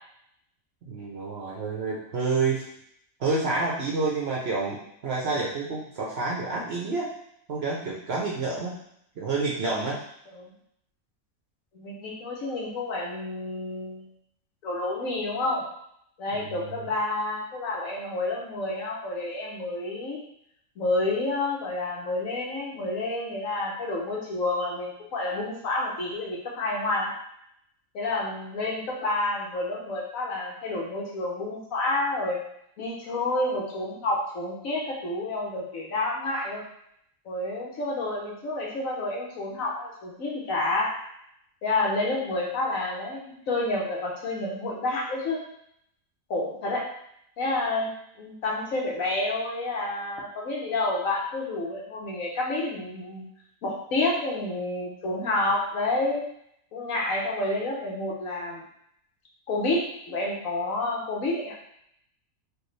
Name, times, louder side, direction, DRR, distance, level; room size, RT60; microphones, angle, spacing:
voice 1, 0.9-2.6 3.2-4.8 5.0-7.1 7.5-8.8 9.2-10.0 16.3-16.8, right 3 dB, 55° right, -3 dB, 0.8 m, -28 dB
voice 2, 11.7-14.1 14.6-15.6 16.2-20.2 20.8-27.1 27.9-32.4 32.8-36.6 37.2-40.9 41.6-45.4 46.3-46.8 47.4-47.9 48.2-53.3 53.6-56.2 56.7-58.6 59.5-61.5, left 2 dB, 65° left, -3 dB, 1.2 m, -29 dB
4.7 x 2.4 x 3.1 m, 0.72 s
omnidirectional pair, 1.6 m